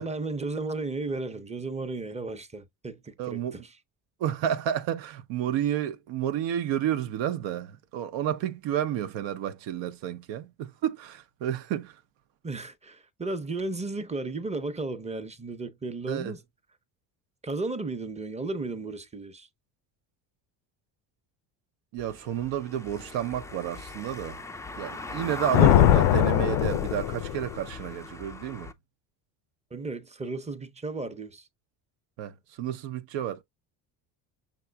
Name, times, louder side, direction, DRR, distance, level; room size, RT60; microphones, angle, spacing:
voice 1, 0.0-3.6 12.4-16.4 17.4-19.5 29.7-31.5, right 3 dB, 15° right, 0.7 m, -34 dB
voice 2, 3.2-3.6 4.2-12.0 16.1-16.4 21.9-24.4 24.8-28.7 32.2-33.4, right 10 dB, 70° right, 0.7 m, -31 dB
Car passing by / Engine, 22.0-28.7, left 3 dB, 5° left, 0.3 m, -39 dB
Thunder, 25.5-27.7, left 13 dB, 80° left, 0.5 m, -21 dB
6.0 x 3.8 x 2.2 m
supercardioid pair, 85°, 47 cm